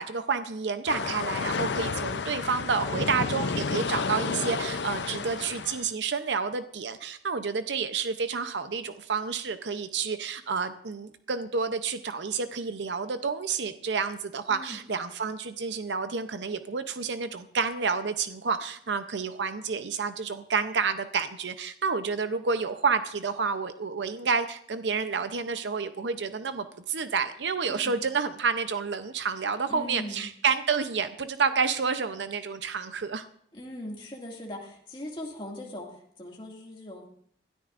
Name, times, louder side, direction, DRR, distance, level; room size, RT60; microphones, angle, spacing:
voice 1, 0.0-33.3, right 5 dB, 90° right, 10 dB, 0.7 m, -29 dB
sound 1, 0.9-5.9, left 4 dB, 85° left, 0.6 m, -31 dB
voice 2, 14.5-14.8 27.7-28.0 29.7-30.3 33.5-37.2, left 1 dB, 30° left, -1 dB, 2.2 m, -40 dB
21.0 x 13.0 x 2.5 m, 0.65 s
head